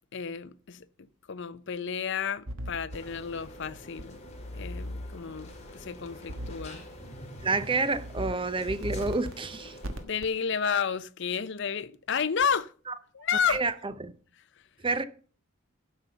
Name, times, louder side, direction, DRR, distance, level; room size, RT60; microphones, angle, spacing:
voice 1, 0.1-0.9 1.3-4.2 4.5-6.8 10.0-12.7 13.1-13.6, left 6 dB, 55° left, 0.6 m, -31 dB
sound 1, 2.5-3.0 4.0-4.1 6.3-6.7 7.2-7.5 7.9-8.3 8.7-9.3 9.8-10.3, equal, 65° right, 1.3 m, -37 dB
sound 2, 2.9-10.0, left 1 dB, 30° left, 2.3 m, -44 dB
voice 2, 7.4-9.8 13.5-14.1 14.8-15.0, right 3 dB, 25° right, 0.7 m, -29 dB
12.0 x 5.5 x 6.8 m
head